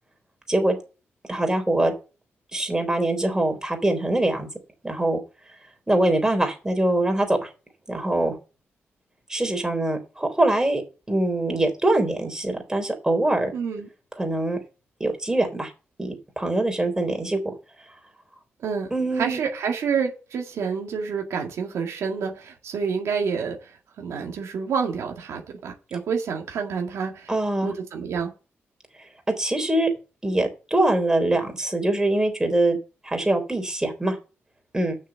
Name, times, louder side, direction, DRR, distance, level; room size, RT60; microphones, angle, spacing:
voice 1, 1.3-1.9 2.5-4.5 4.8-5.2 5.9-7.5 7.9-8.3 9.3-10.8 11.1-13.5 14.2-14.6 15.0-15.7 16.0-17.5 18.9-19.4 27.3-27.7 29.4-29.9 30.2-32.8 33.0-34.2 34.7-34.9, right 1 dB, 15° right, 4 dB, 3.7 m, -23 dB
voice 2, 13.5-13.9 18.6-18.9 19.2-23.6 24.0-27.3 27.6-28.3, right 6 dB, 85° right, 2 dB, 2.0 m, -28 dB
6.6 x 6.4 x 7.1 m, 0.33 s
cardioid pair, 70°, 5 cm